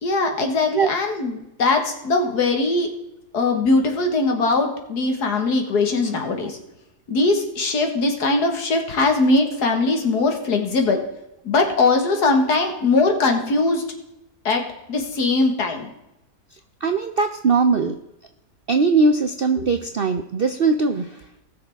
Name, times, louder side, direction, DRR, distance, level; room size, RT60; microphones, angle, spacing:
voice 1, 0.0-2.9 3.3-6.6 7.1-11.0 11.5-13.8 14.5-14.6 14.9-15.9 19.6-19.7, left 3 dB, 70° left, 4 dB, 2.1 m, -20 dB
voice 2, 16.8-18.0 18.7-21.2, right 4 dB, 60° right, 7 dB, 0.6 m, -20 dB
19.0 x 6.6 x 3.5 m, 0.89 s
omnidirectional pair, 1.8 m